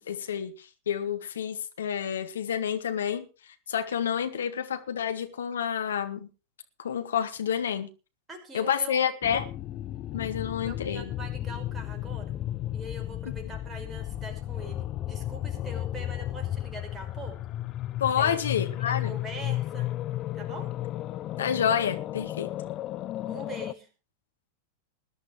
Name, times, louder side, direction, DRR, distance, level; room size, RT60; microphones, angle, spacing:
voice 1, 0.1-3.3 3.7-6.3 6.8-7.9 8.5-9.5 10.1-11.1 18.0-19.2 21.4-22.5, left 8 dB, 65° left, 1.8 m, -29 dB
voice 2, 8.3-9.4 10.6-12.4 12.7-17.4 18.2-18.4 18.8-19.9 20.4-20.7 23.3-23.9, right 2 dB, 15° right, 5.4 m, -43 dB
sound 1, 9.2-23.7, left 13 dB, 35° left, 0.7 m, -34 dB
21.0 x 11.5 x 3.2 m
figure-of-eight pair, 90°, 0 cm